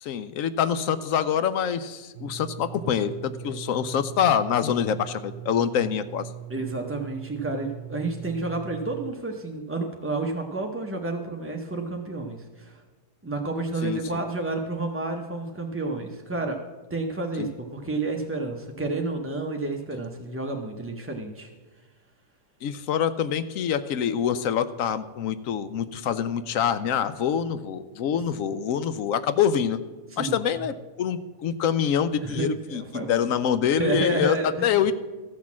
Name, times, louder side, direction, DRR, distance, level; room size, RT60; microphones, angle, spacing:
voice 1, 0.0-6.3 13.8-14.2 17.4-17.5 22.6-29.8 30.2-34.4 34.6-34.9, left 8 dB, 65° left, 13 dB, 0.9 m, -25 dB
sound 1, 2.1-9.1, right 10 dB, 65° right, 0.7 m, -40 dB
voice 2, 6.5-12.7 13.2-16.6 16.9-21.5 28.1-28.2 30.1-30.3 32.2-33.3 33.8-34.7, right 2 dB, 20° right, 1 dB, 0.3 m, -30 dB
14.0 x 6.1 x 7.3 m, 1.2 s
omnidirectional pair, 1.7 m